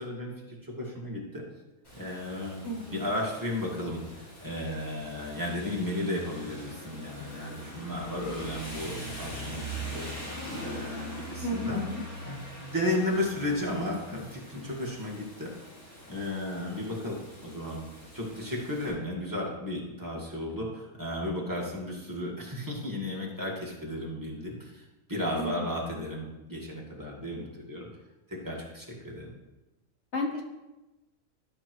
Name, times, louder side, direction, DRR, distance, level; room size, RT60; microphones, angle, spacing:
voice 1, 0.0-1.4 1.9-10.1 10.5-11.8 12.2-15.5 16.1-17.8 18.1-27.9 28.3-29.3, left 1 dB, 15° right, -3 dB, 1.6 m, -34 dB
Rain, 1.8-18.9, right 1 dB, 85° left, 4.1 m, -42 dB
voice 2, 2.6-3.1 11.4-12.0 25.3-25.6 30.1-30.4, left 1 dB, 55° left, 0 dB, 1.4 m, -33 dB
12.5 x 6.1 x 3.1 m, 1.0 s
omnidirectional pair, 1.5 m